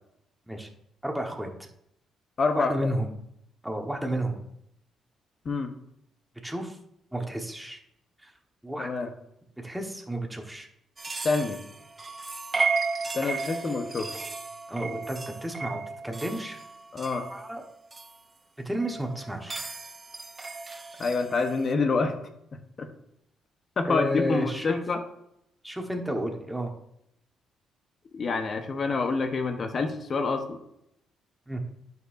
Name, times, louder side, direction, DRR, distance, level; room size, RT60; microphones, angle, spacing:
voice 1, 1.0-1.7 2.5-3.1 3.6-4.4 6.4-6.8 7.1-7.8 8.2-8.3 8.6-8.9 9.6-10.7 12.5-12.7 14.7-16.6 17.3-17.6 18.6-19.6 23.8-24.8 25.6-26.7 31.5-31.6, right 1 dB, 5° right, 2 dB, 1.3 m, -32 dB
voice 2, 2.4-2.9 5.4-5.7 8.8-9.1 11.2-11.6 13.1-14.1 16.9-17.3 21.0-22.2 22.5-22.9 23.8-25.0 28.1-30.6, left 4 dB, 45° left, 6 dB, 1.0 m, -27 dB
sound 1, 11.0-18.1 18.7-21.7, right 4 dB, 25° right, 0.6 m, -34 dB
11.0 x 5.6 x 2.7 m, 0.76 s
cardioid pair, 90°, 0 cm